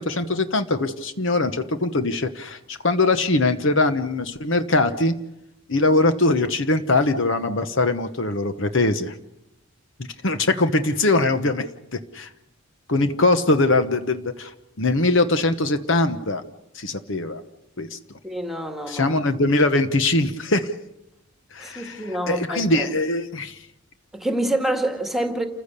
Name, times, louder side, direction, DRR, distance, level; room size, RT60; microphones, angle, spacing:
voice 1, 0.0-5.1 5.7-9.2 10.2-11.7 11.9-12.3 12.9-16.4 16.7-17.4 17.8-18.0 18.9-20.7 21.5-23.7, left 2 dB, 55° left, 1.1 m, -22 dB
voice 2, 18.2-19.2 21.6-22.9 24.1-25.5, right 1 dB, ahead, 1.9 m, -27 dB
29.0 x 15.5 x 6.8 m
head